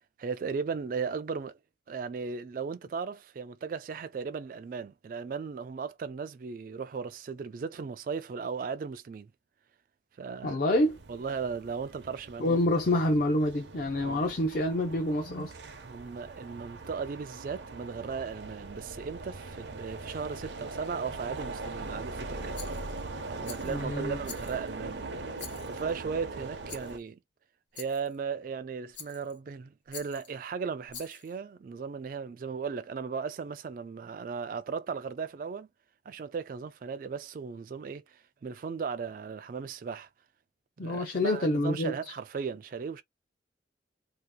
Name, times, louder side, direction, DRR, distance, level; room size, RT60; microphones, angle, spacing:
voice 1, 0.2-1.6 1.9-9.3 10.2-10.6 11.1-12.6 14.0-14.2 15.8-22.5 23.3-25.2 25.7-27.2 27.7-35.7 36.1-40.1 40.8-43.0, right 5 dB, 50° right, 0.3 m, -36 dB
voice 2, 10.4-11.0 12.4-15.5 23.6-24.2 40.8-41.9, left 1 dB, 50° left, 0.5 m, -27 dB
sound 1, 10.7-27.0, right 3 dB, 75° right, 0.7 m, -41 dB
Rattle, 22.5-23.0 23.4-23.8 24.2-24.8 25.4-25.9 26.7-27.0 27.7-28.2 28.9-29.4 29.9-30.3 30.9-31.4, left 6 dB, 75° left, 1.2 m, -46 dB
2.8 x 2.4 x 3.6 m
head